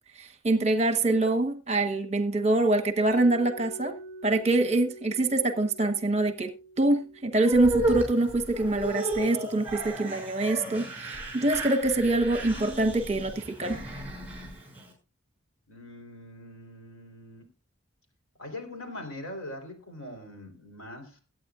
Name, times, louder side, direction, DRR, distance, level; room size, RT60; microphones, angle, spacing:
voice 1, 0.2-3.9 4.2-6.5 6.8-13.8, right 2 dB, 30° right, 1.1 m, -25 dB
Mallet percussion, 3.1-8.9, right 2 dB, 25° left, 6.9 m, -46 dB
sound 1, 7.4-14.9, right 1 dB, 5° right, 6.1 m, -34 dB
voice 2, 15.7-17.4 18.4-21.2, left 1 dB, 65° left, 3.8 m, -42 dB
22.5 x 9.1 x 2.5 m
head